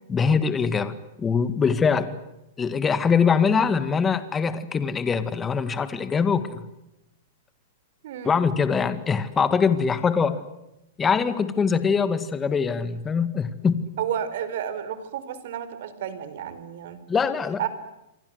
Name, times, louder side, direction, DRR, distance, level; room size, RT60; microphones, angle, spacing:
voice 1, 0.1-2.1 2.6-6.7 8.2-10.4 11.0-13.8 17.1-17.6, left 6 dB, 15° left, 13 dB, 1.8 m, -23 dB
voice 2, 8.0-8.3 14.0-17.0 17.6-17.7, right 9 dB, 60° right, 13 dB, 4.5 m, -31 dB
28.5 x 24.0 x 8.0 m, 0.89 s
hypercardioid pair, 150°, 0 cm